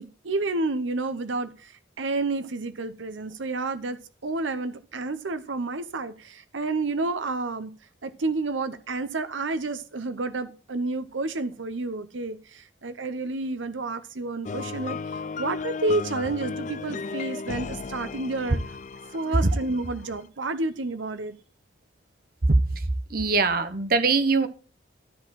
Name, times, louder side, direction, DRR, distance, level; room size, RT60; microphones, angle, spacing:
voice 1, 0.0-7.7 8.0-18.6 19.1-21.4, right 3 dB, 80° right, 0.8 m, -30 dB
sound 1, 14.4-20.3, left 4 dB, 40° left, 0.4 m, -35 dB
voice 2, 22.5-24.5, right 3 dB, 50° right, 1.0 m, -22 dB
13.0 x 4.4 x 7.4 m
head